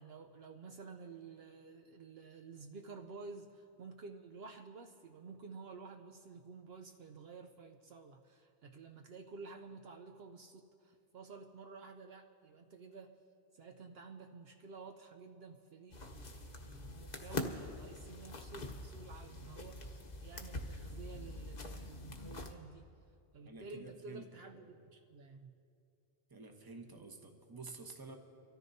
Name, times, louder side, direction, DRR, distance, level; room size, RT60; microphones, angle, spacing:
voice 1, 0.0-13.1 13.5-22.8 23.3-25.6, right 4 dB, 65° right, 4 dB, 0.8 m, -52 dB
sound 1, 15.9-22.5, left 2 dB, 40° left, 1.0 m, -44 dB
voice 2, 23.4-24.2 24.5-24.7 26.3-28.2, right 4 dB, 20° right, 3 dB, 1.0 m, -50 dB
25.0 x 13.5 x 2.7 m, 2.6 s
omnidirectional pair, 1.1 m